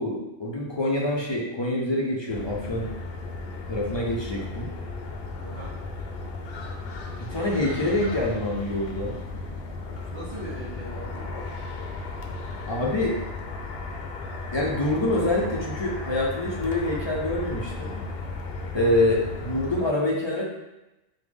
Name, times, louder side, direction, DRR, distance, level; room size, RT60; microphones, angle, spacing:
voice 1, 0.0-2.9 3.7-4.7 7.3-9.2 12.7-13.2 14.5-18.0 18.7-20.4, left 1 dB, 40° left, -3 dB, 0.4 m, -26 dB
sound 1, 2.3-19.8, left 3 dB, 70° left, 0.7 m, -35 dB
voice 2, 5.4-5.8 10.1-11.4 18.7-19.1, right 2 dB, 65° right, -8 dB, 1.2 m, -40 dB
5.0 x 2.1 x 3.4 m, 0.96 s
omnidirectional pair, 1.1 m